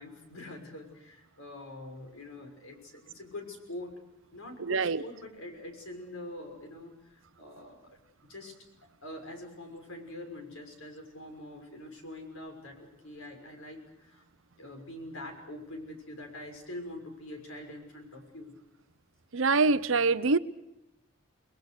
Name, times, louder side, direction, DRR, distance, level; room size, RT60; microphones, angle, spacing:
voice 1, 0.0-4.0 4.3-8.5 9.0-14.2 14.6-18.6, left 1 dB, 80° left, 6.2 m, -44 dB
voice 2, 4.6-5.0 19.3-20.4, right 4 dB, 70° right, 0.8 m, -25 dB
29.5 x 21.5 x 6.7 m
head